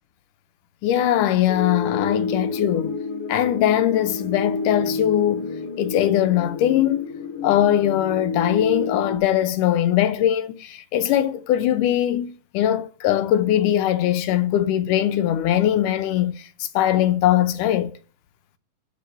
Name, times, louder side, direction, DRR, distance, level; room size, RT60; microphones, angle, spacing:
voice 1, 0.8-2.9 3.3-5.5 5.8-7.1 7.4-17.9, left 11 dB, 80° left, 2.2 m, -21 dB
sound 1, 1.5-9.2, left 4 dB, 55° left, 1.7 m, -30 dB
10.5 x 4.3 x 7.6 m
omnidirectional pair, 3.8 m